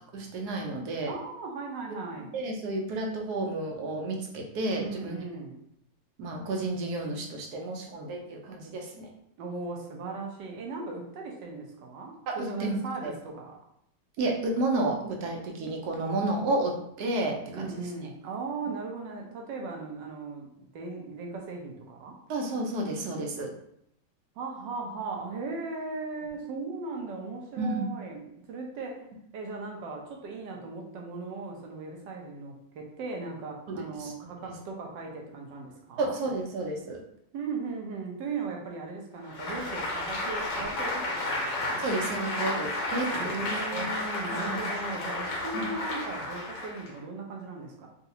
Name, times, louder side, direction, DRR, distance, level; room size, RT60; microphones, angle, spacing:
voice 1, 0.1-1.1 2.3-5.2 6.2-9.1 12.3-12.8 13.0-13.1 14.2-17.7 22.3-23.5 27.6-27.9 33.7-34.1 34.4-34.5 36.0-37.0 41.8-43.1 43.3-43.9 44.4-44.6, right 2 dB, 70° right, 1 dB, 1.1 m, -31 dB
voice 2, 1.1-2.3 4.8-5.6 9.4-13.6 17.5-22.2 24.4-29.0 29.3-36.2 37.3-41.8 43.1-47.9, right 3 dB, 90° right, 1 dB, 1.4 m, -38 dB
Applause, 39.2-47.0, left 2 dB, 75° left, 1.4 m, -32 dB
3.9 x 2.4 x 2.7 m, 0.75 s
omnidirectional pair, 1.9 m